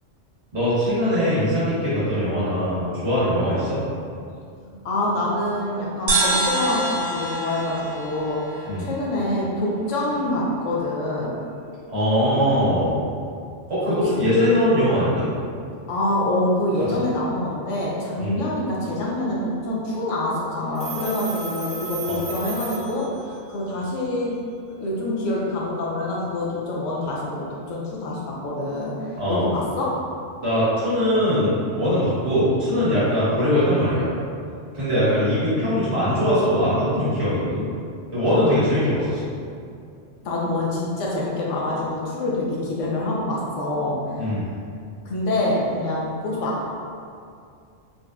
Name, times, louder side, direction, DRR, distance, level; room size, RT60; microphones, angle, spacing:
voice 1, 0.5-3.8 8.7-8.9 11.9-13.0 13.7-15.3 16.9-17.0 18.2-18.3 22.1-22.2 29.2-29.4 30.4-34.2 34.7-37.6 38.1-39.2 44.2-44.4, equal, 60° right, -11 dB, 1.5 m, -21 dB
voice 2, 4.6-11.3 13.8-14.3 15.9-24.4 24.7-30.0 40.2-44.3 45.0-46.7, left 1 dB, 75° left, -4 dB, 0.9 m, -26 dB
sound 1, 6.1-9.6, right 2 dB, 90° right, 1.2 m, -26 dB
Telephone, 20.7-23.5, right 2 dB, 5° right, 0.7 m, -33 dB
3.9 x 2.6 x 2.2 m, 2.4 s
omnidirectional pair, 1.3 m